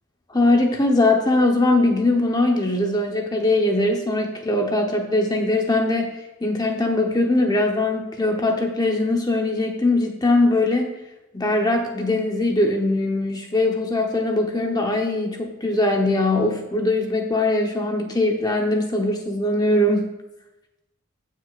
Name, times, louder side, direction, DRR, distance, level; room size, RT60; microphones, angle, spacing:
voice 1, 0.3-6.1 6.4-10.9 11.3-20.1, left 2 dB, 20° left, 2 dB, 1.0 m, -21 dB
15.5 x 6.3 x 2.5 m, 0.97 s
head